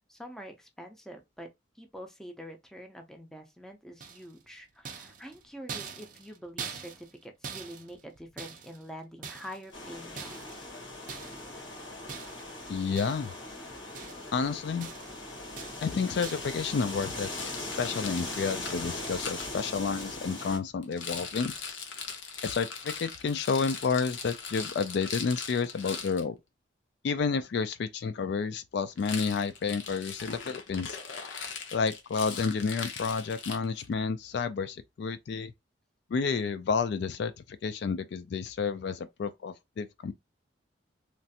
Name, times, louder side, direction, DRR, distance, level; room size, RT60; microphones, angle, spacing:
voice 1, 0.1-1.5 1.8-10.7 22.4-22.6, equal, 5° left, 0.5 m, -46 dB
sound 1, 4.0-4.5 4.9-8.9 9.2-9.8 10.2-10.6 11.1-11.5 12.1-12.6 13.0-13.4 13.7-14.4 14.8-15.2 15.6-15.9 16.2-16.6, right 6 dB, 45° right, 0.5 m, -43 dB
sound 2, 9.7-20.6, left 2 dB, 90° left, 1.4 m, -40 dB
voice 2, 12.7-13.3 14.3-14.9 15.8-17.3 17.6-21.5 22.4-26.4 27.0-31.0 31.7-35.5 36.1-40.1, left 5 dB, 60° left, 0.3 m, -30 dB
Rattle, 16.9-19.5 20.8-26.2 29.0-33.9, left 6 dB, 75° left, 0.7 m, -40 dB
3.2 x 2.4 x 2.7 m
head